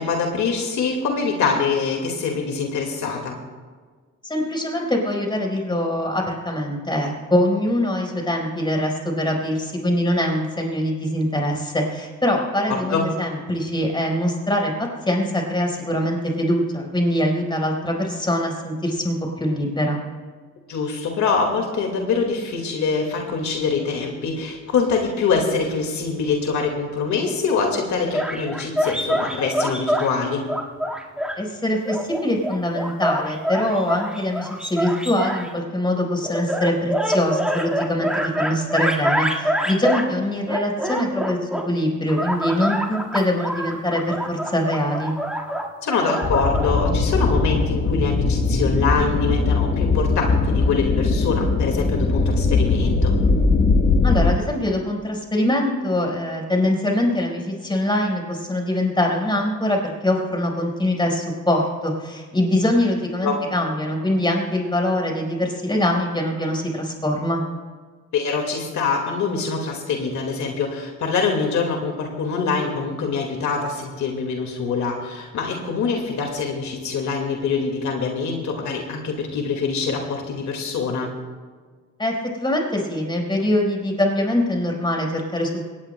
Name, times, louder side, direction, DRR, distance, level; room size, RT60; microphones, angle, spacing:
voice 1, 0.0-3.4 12.7-13.1 20.7-30.5 45.8-53.2 63.2-63.4 68.1-81.1, left 5 dB, 70° left, 2 dB, 2.0 m, -24 dB
voice 2, 4.2-20.0 31.4-41.4 41.7-45.1 54.0-67.4 82.0-85.7, left 1 dB, 15° left, 0 dB, 4.5 m, -23 dB
sound 1, 28.1-30.1 30.5-31.4 31.9-35.5 36.2-40.1 40.5-41.7 42.1-46.8, equal, 5° right, 1.8 m, -25 dB
sound 2, 46.2-54.3, left 3 dB, 35° left, 1.2 m, -20 dB
20.5 x 18.5 x 2.2 m, 1.5 s
cardioid pair, 90°, 30 cm